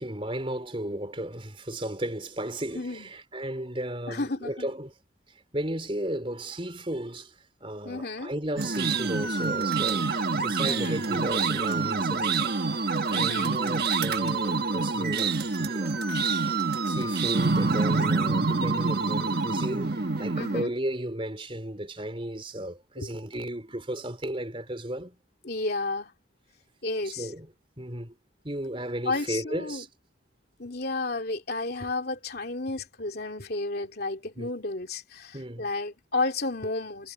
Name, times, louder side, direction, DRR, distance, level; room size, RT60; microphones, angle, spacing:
voice 1, 0.0-4.9 5.5-12.5 13.0-16.0 16.9-25.2 27.0-27.5 27.8-28.2 28.4-29.9 34.4-34.5 35.3-35.7, right 1 dB, 25° right, 4.1 m, -35 dB
voice 2, 2.7-3.1 4.1-4.7 7.8-8.3 10.6-11.0 13.1-13.6 20.3-20.7 23.0-23.1 25.4-26.1 26.8-27.3 29.0-29.8 30.6-37.1, left 3 dB, 50° left, 2.9 m, -32 dB
sound 1, 8.6-20.6, right 4 dB, 55° right, 1.5 m, -26 dB
head